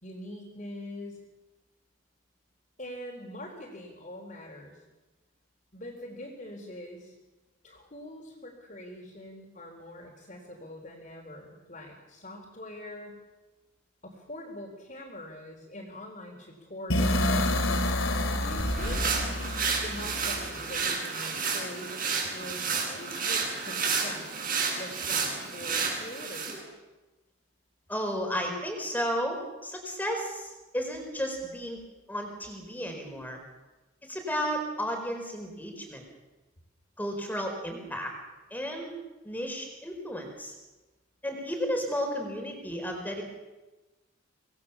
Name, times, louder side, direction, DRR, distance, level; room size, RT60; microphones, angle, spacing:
voice 1, 0.0-1.2 2.8-4.8 5.7-7.1 7.6-13.2 14.0-17.5 18.4-24.4 24.8-26.6, left 1 dB, 40° left, -1 dB, 4.2 m, -43 dB
sound 1, 16.9-20.8, left 1 dB, 75° left, 3.0 m, -28 dB
Laundry basket against clothes, 18.3-26.6, right 5 dB, 40° right, 7.9 m, -31 dB
voice 2, 27.9-31.8 32.1-33.4 34.1-36.0 37.0-38.1 38.5-38.9 39.2-40.5 41.2-43.2, equal, 10° left, 3 dB, 4.7 m, -33 dB
25.5 x 20.0 x 7.3 m, 1.1 s
head